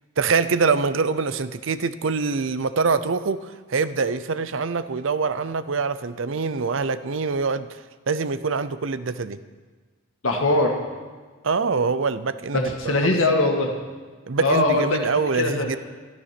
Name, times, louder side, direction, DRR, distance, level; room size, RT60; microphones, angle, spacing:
voice 1, 0.2-7.8 8.1-9.4 11.4-12.9 14.3-15.8, right 4 dB, 70° right, 14 dB, 0.6 m, -24 dB
voice 2, 10.2-10.7 12.5-13.7 14.4-15.7, left 2 dB, 75° left, 2 dB, 1.9 m, -21 dB
12.5 x 12.5 x 6.0 m, 1.4 s
head